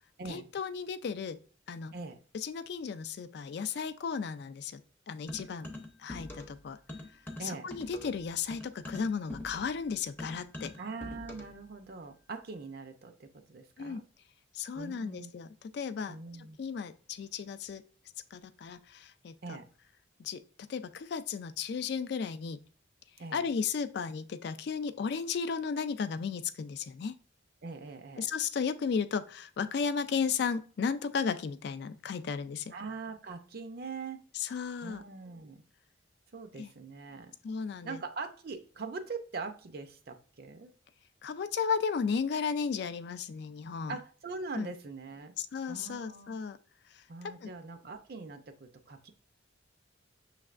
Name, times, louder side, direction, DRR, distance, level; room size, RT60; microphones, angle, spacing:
voice 1, 0.3-1.4 1.7-1.9 2.3-4.8 5.1-5.7 6.0-6.8 7.4-10.7 13.8-14.0 14.5-16.2 16.6-17.8 18.3-19.6 20.2-22.6 23.3-27.1 28.2-32.7 34.3-35.0 36.6-36.7 37.4-38.0 41.2-44.0 44.6-44.7 45.4-46.6 46.9-47.0 47.4-47.5, left 6 dB, 55° left, 12 dB, 0.3 m, -34 dB
sound 1, 5.3-6.6 6.9-11.6, left 1 dB, 10° left, 0.6 m, -44 dB
voice 2, 10.8-14.0 14.7-15.3 16.1-16.6 19.4-19.7 23.2-23.4 27.6-28.3 32.7-34.2 34.8-35.6 36.3-37.3 37.8-40.7 43.9-45.3 45.7-46.3 47.1-49.1, right 4 dB, 50° right, 8 dB, 0.5 m, -42 dB
6.1 x 3.3 x 2.4 m, 0.40 s
head